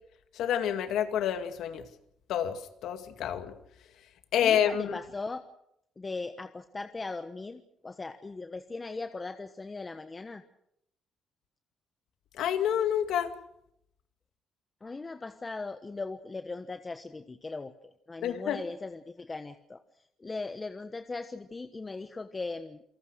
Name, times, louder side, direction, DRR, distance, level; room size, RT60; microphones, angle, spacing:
voice 1, 0.4-1.8 2.3-3.5 4.3-5.0 12.4-13.3 18.2-18.6, left 9 dB, 80° left, 8 dB, 2.2 m, -28 dB
voice 2, 4.4-5.4 6.0-10.4 14.8-17.7 18.1-19.8 20.2-22.8, left 3 dB, 25° left, 8 dB, 1.3 m, -39 dB
28.5 x 19.0 x 6.4 m, 0.78 s
cardioid pair, 90°, 0 cm